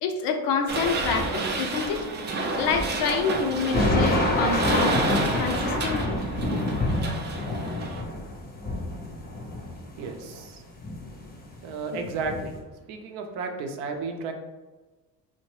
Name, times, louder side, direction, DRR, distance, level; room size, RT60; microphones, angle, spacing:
voice 1, 0.0-2.0 2.6-6.2 11.9-12.0, left 5 dB, 80° left, 4 dB, 0.6 m, -28 dB
sound 1, 0.7-8.0, right 3 dB, 30° right, 0.4 m, -30 dB
sound 2, 3.7-10.4 10.8-11.6 12.0-12.6, left 1 dB, 25° left, 0.6 m, -27 dB
voice 2, 9.9-10.6 11.6-12.6 12.9-14.3, right 4 dB, 80° right, 4 dB, 0.6 m, -33 dB
2.7 x 2.1 x 3.0 m, 1.2 s
cardioid pair, 105°, 40 cm